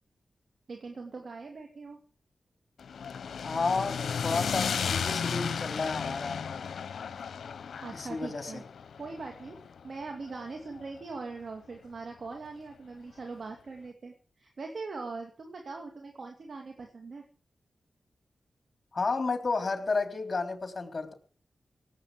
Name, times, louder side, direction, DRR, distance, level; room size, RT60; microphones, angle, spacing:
voice 1, 0.7-2.0 7.8-8.6 9.0-17.3, right 4 dB, 65° right, 3 dB, 2.7 m, -41 dB
sound 1, 2.8-11.0, left 6 dB, 85° left, 0.8 m, -34 dB
voice 2, 3.4-6.6 7.9-8.6 18.9-21.1, left 4 dB, 50° left, 7 dB, 3.5 m, -32 dB
17.5 x 7.9 x 8.5 m, 0.44 s
cardioid pair, 45°, 0 cm